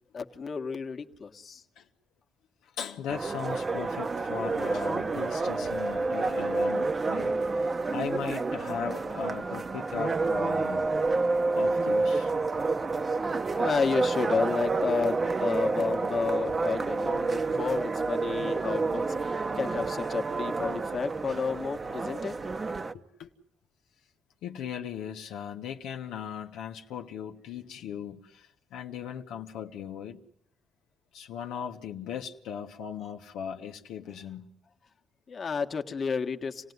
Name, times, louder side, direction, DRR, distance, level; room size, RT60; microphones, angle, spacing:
voice 1, 0.1-1.6 7.6-7.8 13.5-22.4 35.3-36.7, left 5 dB, 45° left, 1.6 m, -31 dB
voice 2, 2.6-10.9 11.5-12.3 22.9-23.3 24.4-30.2 31.1-34.5, left 8 dB, 90° left, 1.3 m, -38 dB
sound 1, 3.1-22.9, right 3 dB, 30° right, 1.0 m, -29 dB
27.5 x 17.5 x 9.5 m
cardioid pair, 90°, 0 cm